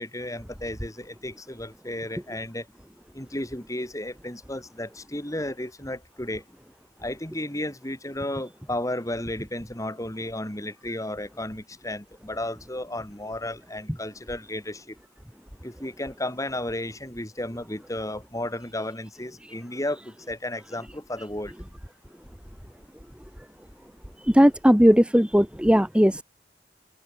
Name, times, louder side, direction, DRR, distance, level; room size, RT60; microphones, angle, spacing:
voice 1, 0.0-2.7 3.1-6.4 7.0-14.9 15.6-21.5, left 1 dB, 20° left, 5.1 m, -33 dB
voice 2, 24.3-26.2, equal, 5° right, 2.0 m, -18 dB
head